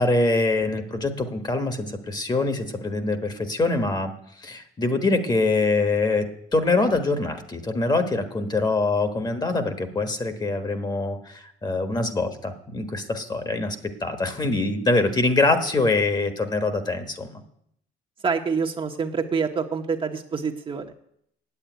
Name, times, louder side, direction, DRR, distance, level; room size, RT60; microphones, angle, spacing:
voice 1, 0.0-6.3 6.5-17.3, left 3 dB, 25° left, 7 dB, 1.4 m, -24 dB
voice 2, 18.2-21.0, right 5 dB, 30° right, 3 dB, 1.1 m, -26 dB
8.4 x 8.3 x 9.3 m, 0.71 s
cardioid pair, 110°, 17 cm